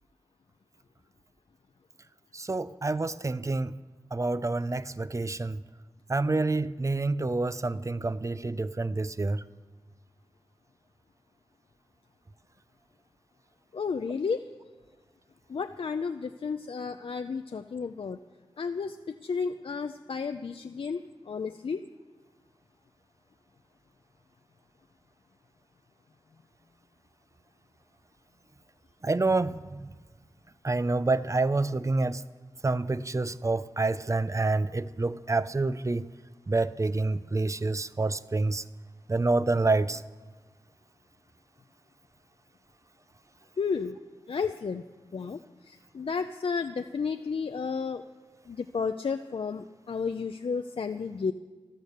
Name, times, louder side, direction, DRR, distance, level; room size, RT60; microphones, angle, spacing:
voice 1, 2.3-3.8 4.1-5.6 6.1-9.4 29.0-29.9 30.6-32.2 32.6-36.1 36.5-38.6 39.1-40.0, right 3 dB, 30° right, 0.6 m, -28 dB
voice 2, 13.7-14.5 15.5-18.2 18.6-21.8 43.6-44.0 44.3-44.8 45.1-48.0 48.5-51.3, left 5 dB, 70° left, 0.5 m, -32 dB
14.5 x 13.0 x 6.7 m
wide cardioid pair, 60°, 10 cm